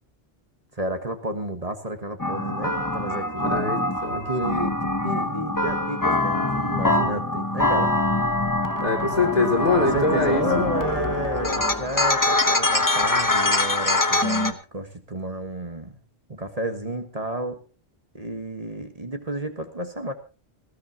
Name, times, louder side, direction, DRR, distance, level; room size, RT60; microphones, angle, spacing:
voice 1, 0.7-3.6 4.1-7.9 9.8-15.9 16.3-17.6 18.1-20.1, right 1 dB, 35° right, 6 dB, 1.6 m, -31 dB
sound 1, 2.2-14.5, left 2 dB, 20° left, 1.1 m, -24 dB
voice 2, 3.4-4.2 8.8-10.7, left 3 dB, 40° left, 2 dB, 3.1 m, -23 dB
20.0 x 15.5 x 3.0 m, 0.33 s
omnidirectional pair, 1.1 m